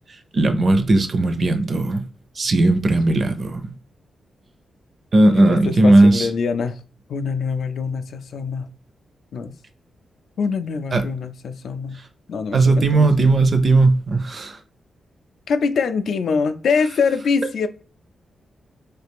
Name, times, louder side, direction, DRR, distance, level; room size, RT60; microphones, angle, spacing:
voice 1, 0.3-2.0 2.4-3.6 5.1-6.3 10.9-11.0 12.5-14.6, right 2 dB, 45° right, 0.5 m, -16 dB
voice 2, 5.3-6.8 7.1-8.7 9.3-9.5 10.4-12.0 12.3-13.3 15.5-17.7, left 5 dB, 75° left, 0.3 m, -24 dB
3.2 x 2.4 x 3.4 m
cardioid pair, 110°, 0 cm